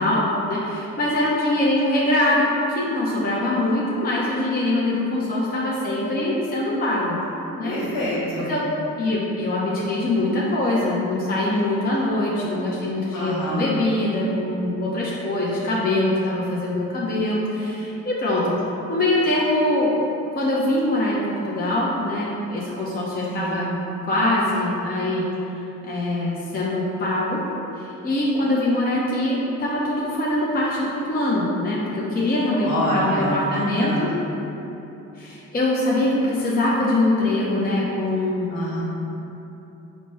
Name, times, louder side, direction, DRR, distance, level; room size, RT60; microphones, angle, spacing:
voice 1, 0.0-7.2 7.5-7.7 8.4-8.6 9.0-18.6 18.9-20.0 20.3-23.7 24.0-25.3 25.8-27.4 27.8-34.1 35.2-38.5, left 1 dB, 25° left, -6 dB, 0.6 m, -23 dB
voice 2, 7.6-8.5 13.1-13.7 23.3-23.7 32.6-34.1 38.5-38.8, equal, 60° left, -7 dB, 1.3 m, -26 dB
4.1 x 2.0 x 3.3 m, 3.0 s
hypercardioid pair, 45°, 37 cm